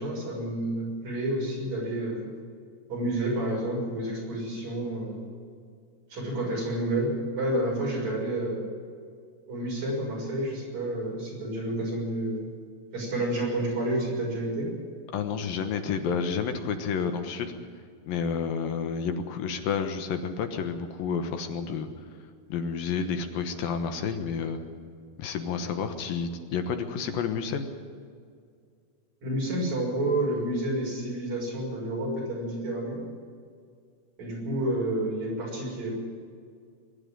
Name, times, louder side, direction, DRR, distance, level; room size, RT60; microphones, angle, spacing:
voice 1, 0.0-2.3 2.9-5.2 6.1-8.6 9.5-12.5 12.9-14.7 29.2-33.0 34.2-35.9, right 1 dB, 50° right, -2 dB, 7.7 m, -29 dB
voice 2, 15.1-17.5 18.1-21.9 22.5-24.6 25.2-27.7, left 6 dB, 75° left, 7 dB, 3.0 m, -30 dB
22.5 x 12.0 x 9.8 m, 2.2 s
omnidirectional pair, 4.2 m